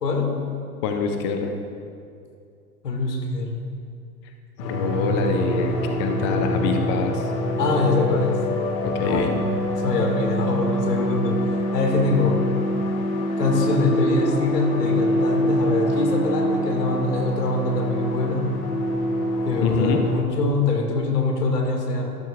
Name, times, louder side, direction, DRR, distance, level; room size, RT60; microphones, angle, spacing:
voice 1, 0.0-0.3 2.8-3.6 7.6-8.4 9.0-9.4 9.8-11.5 11.7-12.4 13.4-18.4 19.4-22.1, left 3 dB, 75° left, 2 dB, 2.1 m, -23 dB
voice 2, 0.8-1.5 4.6-7.2 8.8-9.4 19.6-20.0, left 5 dB, 20° left, 5 dB, 0.3 m, -25 dB
sound 1, 4.6-20.2, equal, 55° left, 2.3 m, -25 dB
14.0 x 12.0 x 2.4 m, 2.4 s
hypercardioid pair, 110°, 48 cm